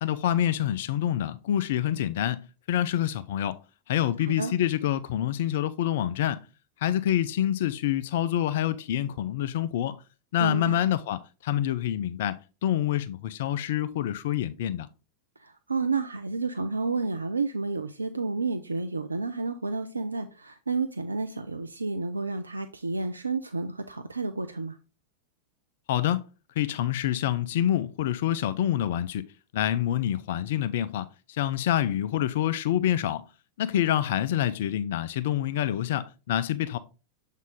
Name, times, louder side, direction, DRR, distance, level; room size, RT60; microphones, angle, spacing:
voice 1, 0.0-2.4 2.7-3.6 3.9-6.4 6.8-10.0 10.3-14.9 25.9-26.2 26.6-29.2 29.5-33.2 33.6-36.8, left 11 dB, 55° left, 0.3 m, -27 dB
voice 2, 10.4-10.8 15.4-24.8, right 3 dB, 80° right, 0.4 m, -30 dB
7.3 x 3.6 x 3.7 m
figure-of-eight pair, 90°, 0 cm